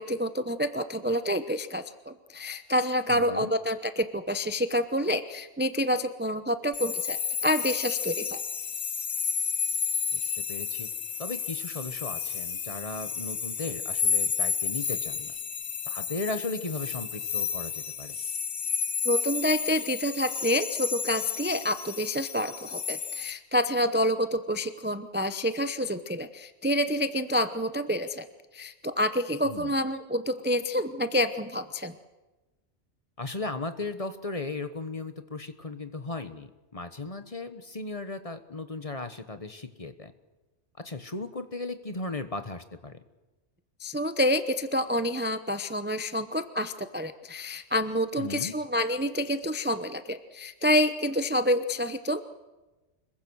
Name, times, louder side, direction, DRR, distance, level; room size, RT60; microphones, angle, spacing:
voice 1, 0.0-7.2 7.4-8.4 19.0-28.3 28.5-31.9 43.8-52.2, equal, 10° right, 10 dB, 0.7 m, -28 dB
voice 2, 3.1-3.5 10.1-10.9 11.2-15.3 15.9-18.2 29.4-29.7 33.2-40.1 40.8-43.0 48.2-48.6, left 3 dB, 30° left, 10 dB, 1.2 m, -36 dB
sound 1, 6.7-23.3, left 6 dB, 60° left, 1.2 m, -31 dB
26.0 x 22.5 x 6.3 m, 1.1 s
omnidirectional pair, 1.2 m